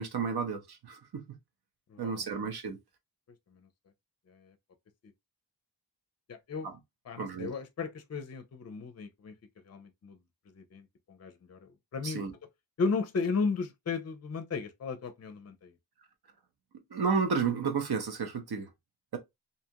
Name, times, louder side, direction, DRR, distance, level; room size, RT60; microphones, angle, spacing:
voice 1, 0.0-1.4 2.0-2.8 6.6-6.7 7.2-7.5 12.0-12.3 16.9-18.7, right 5 dB, 65° right, 0.8 m, -32 dB
voice 2, 1.9-2.4 4.3-4.5 6.3-6.7 7.1-9.4 9.6-10.2 10.5-12.2 12.8-15.7, left 4 dB, 40° left, 0.5 m, -35 dB
2.6 x 2.4 x 2.7 m
wide cardioid pair, 90°, 42 cm